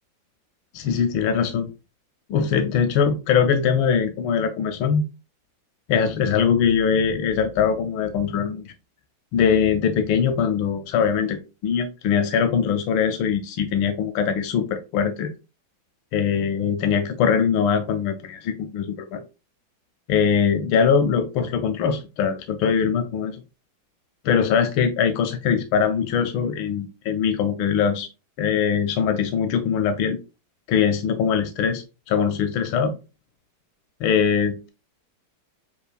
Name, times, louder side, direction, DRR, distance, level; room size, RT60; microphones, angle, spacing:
voice 1, 0.7-1.7 2.3-5.0 5.9-8.7 9.3-15.3 16.1-19.2 20.1-23.4 24.2-28.1 28.4-30.2 30.7-32.9 34.0-34.7, left 7 dB, 85° left, 7 dB, 1.4 m, -22 dB
6.7 x 2.4 x 2.4 m, 0.29 s
omnidirectional pair, 2.1 m